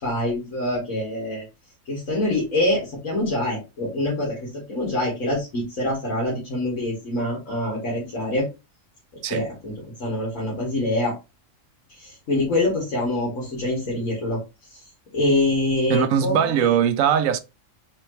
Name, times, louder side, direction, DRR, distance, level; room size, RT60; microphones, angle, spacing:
voice 1, 0.0-1.4 1.9-8.5 9.3-9.7 10.0-11.1 12.0-14.4 15.1-16.7, left 1 dB, 75° left, 2.1 m, -25 dB
voice 2, 15.9-17.4, right 8 dB, 85° right, 1.0 m, -20 dB
4.3 x 3.3 x 3.1 m
omnidirectional pair, 1.4 m